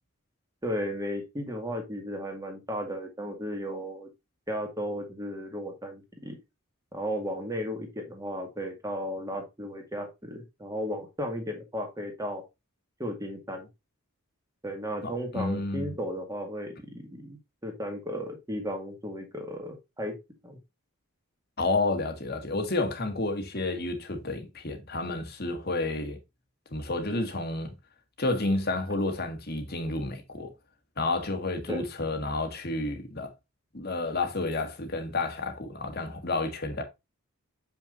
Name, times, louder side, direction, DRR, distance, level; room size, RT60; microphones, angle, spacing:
voice 1, 0.6-4.1 4.5-6.4 6.9-12.4 13.0-13.7 14.6-20.1 20.4-20.6 31.7-31.8, equal, 15° right, 1.9 m, -35 dB
voice 2, 15.0-15.9 21.6-26.2 26.7-27.7 28.2-30.5 31.0-33.3 33.7-36.8, left 2 dB, 45° left, 1.6 m, -30 dB
6.9 x 5.8 x 2.5 m
head